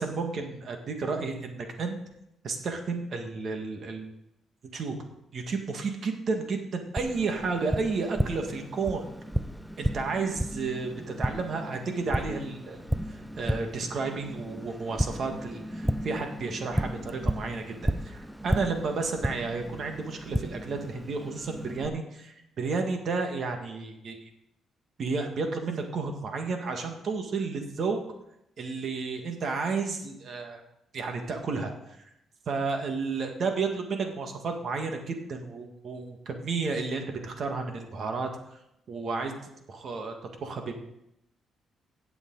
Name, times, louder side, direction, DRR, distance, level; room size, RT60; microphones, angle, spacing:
voice 1, 0.0-2.0 2.4-4.1 4.7-5.0 5.3-9.1 9.8-17.6 18.0-24.2 25.0-28.0 28.6-30.6 30.9-31.7 32.5-38.3 38.9-39.3 39.7-40.1 40.4-40.8, right 4 dB, 55° right, 4 dB, 1.8 m, -32 dB
Tap, 7.0-21.9, equal, 5° right, 0.6 m, -33 dB
16.5 x 7.0 x 4.0 m, 0.84 s
cardioid pair, 90°, 0 cm